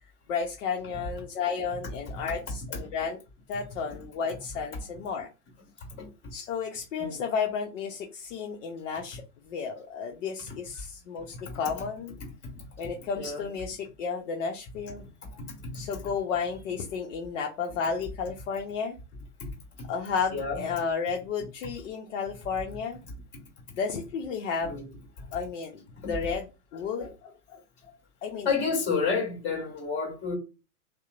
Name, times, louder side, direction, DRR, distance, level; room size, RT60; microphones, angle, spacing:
voice 1, 0.3-3.2 3.5-5.3 6.3-12.2 12.8-15.0 15.7-18.9 19.9-23.0 23.7-24.8 25.3-26.4 26.7-27.6 28.2-28.5, left 5 dB, 55° left, 0.6 m, -32 dB
voice 2, 11.3-11.7 12.5-12.6 13.1-13.5 15.7-15.9 20.3-20.6 24.6-24.9 26.0-26.1 27.0-27.1 28.4-30.4, left 5 dB, 25° left, 1.5 m, -30 dB
2.9 x 2.0 x 2.3 m
hypercardioid pair, 120°, 47 cm